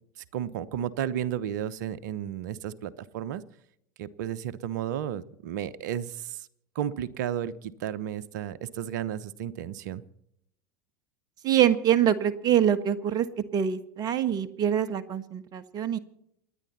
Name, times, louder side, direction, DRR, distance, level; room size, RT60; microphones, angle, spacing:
voice 1, 0.2-3.4 4.0-6.5 6.7-10.0, right 10 dB, 65° right, 16 dB, 1.0 m, -33 dB
voice 2, 11.4-13.3 13.5-16.0, right 10 dB, 40° right, 12 dB, 1.5 m, -24 dB
28.5 x 10.5 x 4.2 m, 0.75 s
hypercardioid pair, 85°, 11 cm